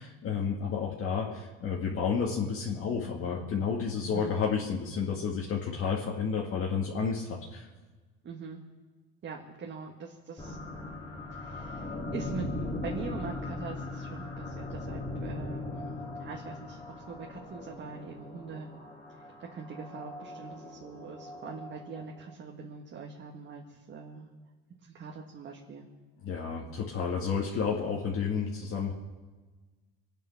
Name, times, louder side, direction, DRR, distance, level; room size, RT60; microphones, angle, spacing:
voice 1, 0.0-7.7 26.2-28.9, left 6 dB, 45° left, -2 dB, 2.0 m, -31 dB
voice 2, 4.0-4.4 8.2-8.6 9.2-10.6 11.3-16.8 17.1-18.7 19.4-24.3 24.8-25.9, right 5 dB, 35° right, 0 dB, 1.7 m, -43 dB
sound 1, 10.4-22.3, left 2 dB, 15° left, 2.8 m, -39 dB
25.0 x 9.1 x 6.0 m, 1.3 s
cardioid pair, 125°, 31 cm